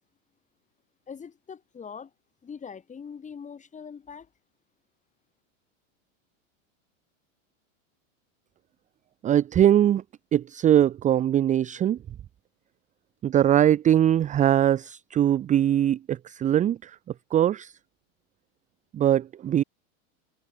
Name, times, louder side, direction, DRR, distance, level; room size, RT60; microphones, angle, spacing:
voice 1, 1.1-2.1 2.4-4.3, left 6 dB, 20° left, 6.5 m, -42 dB
voice 2, 9.2-10.0 10.3-12.0 13.2-17.0 17.3-17.7 18.9-19.6, right 11 dB, 20° right, 0.7 m, -21 dB
supercardioid pair, 140°, 41 cm